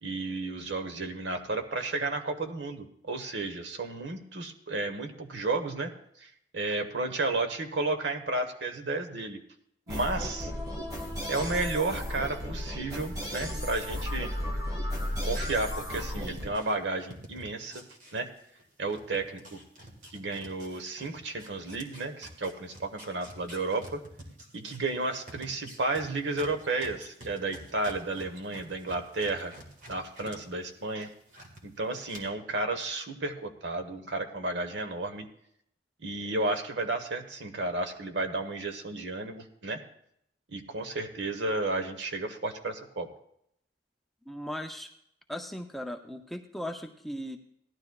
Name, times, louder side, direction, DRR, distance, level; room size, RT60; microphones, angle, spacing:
voice 1, 0.0-5.9 6.2-9.4 9.9-10.5 11.3-14.3 15.2-17.8 18.1-18.3 18.8-19.6 20.1-24.0 24.5-29.5 29.9-31.1 31.6-35.3 36.0-39.8 40.5-43.1, right 2 dB, 75° right, 6 dB, 1.1 m, -32 dB
sound 1, 9.9-16.5, left 1 dB, 20° right, 1.5 m, -34 dB
sound 2, 15.1-18.6 18.9-30.4 30.7-31.6 32.1-32.2, right 1 dB, 45° right, 1.8 m, -49 dB
voice 2, 44.3-44.9 45.3-47.4, equal, ahead, 4 dB, 0.5 m, -37 dB
17.5 x 12.0 x 2.3 m, 0.73 s
head